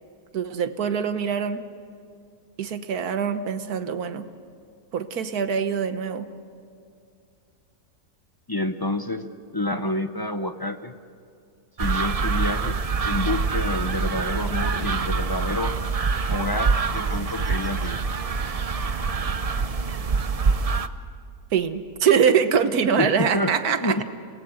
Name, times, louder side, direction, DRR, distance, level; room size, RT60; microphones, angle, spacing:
voice 1, 0.3-1.6 2.6-4.3 4.9-6.3 21.5-24.0, right 7 dB, 70° right, 10 dB, 1.6 m, -23 dB
voice 2, 8.5-10.9 11.8-12.8 13.0-15.7 16.3-18.1 23.0-24.0, left 2 dB, 25° left, 8 dB, 0.4 m, -28 dB
sound 1, 11.8-20.9, right 4 dB, 50° right, 0.4 m, -25 dB
28.0 x 19.0 x 8.0 m, 2.4 s
omnidirectional pair, 1.7 m